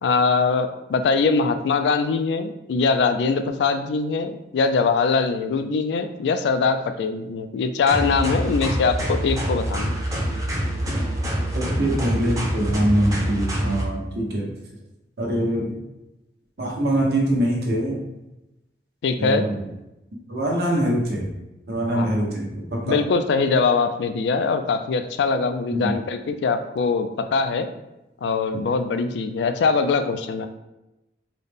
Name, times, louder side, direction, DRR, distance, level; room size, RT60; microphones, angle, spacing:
voice 1, 0.0-10.0 19.0-19.5 21.9-22.2 22.9-27.7 28.2-30.5, left 4 dB, 80° left, 8 dB, 0.3 m, -22 dB
sound 1, 7.9-13.8, equal, 20° right, 0.6 m, -26 dB
voice 2, 11.5-14.5 15.2-15.7 16.6-18.0 19.2-19.6 20.3-21.3 21.7-23.0 25.7-26.0, right 1 dB, 65° right, -2 dB, 0.9 m, -23 dB
3.9 x 2.1 x 3.4 m, 0.95 s
head